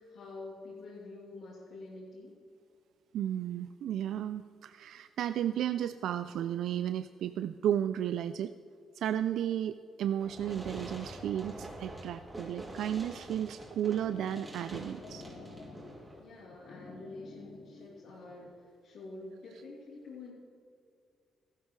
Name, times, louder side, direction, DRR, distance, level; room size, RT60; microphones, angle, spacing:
voice 1, 0.0-2.3 16.2-20.3, left 2 dB, 80° left, -9 dB, 3.1 m, -47 dB
voice 2, 3.1-8.5 8.9-15.2, right 10 dB, 75° right, 12 dB, 0.3 m, -33 dB
Fireworks, 10.2-16.2, right 1 dB, 20° right, 2.7 m, -46 dB
sound 1, 13.6-18.6, left 3 dB, 55° left, 1.6 m, -51 dB
14.5 x 12.5 x 3.2 m, 2.3 s
cardioid pair, 90°, 0 cm